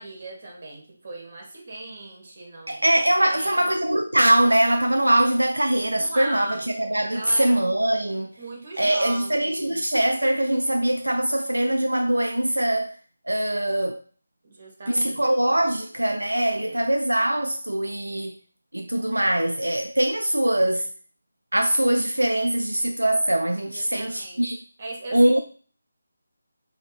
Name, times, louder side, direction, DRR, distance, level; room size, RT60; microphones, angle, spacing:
voice 1, 0.0-2.8 3.2-3.6 5.9-6.7 7.1-7.5 8.4-9.8 14.4-15.2 16.6-16.9 23.7-24.4 24.8-25.4, right 2 dB, 50° right, 1.6 m, -38 dB
voice 2, 2.7-8.4 8.8-13.0 13.3-14.0 14.9-18.4 18.7-20.9 21.5-24.6 25.1-25.4, right 1 dB, 85° right, 0.4 m, -22 dB
6.1 x 2.8 x 2.5 m
figure-of-eight pair, 155°, 0 cm